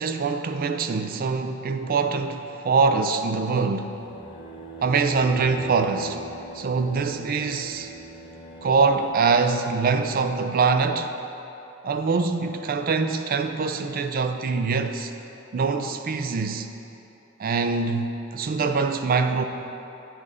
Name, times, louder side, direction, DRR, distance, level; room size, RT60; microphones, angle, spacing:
voice 1, 0.0-3.9 4.8-6.2 6.5-7.9 8.6-11.1 11.8-15.1 15.5-16.7 17.4-19.5, right 4 dB, 45° right, 8 dB, 0.4 m, -24 dB
sound 1, 3.8-9.1, right 3 dB, 20° left, 0.7 m, -41 dB
8.6 x 5.5 x 4.9 m, 3.0 s
head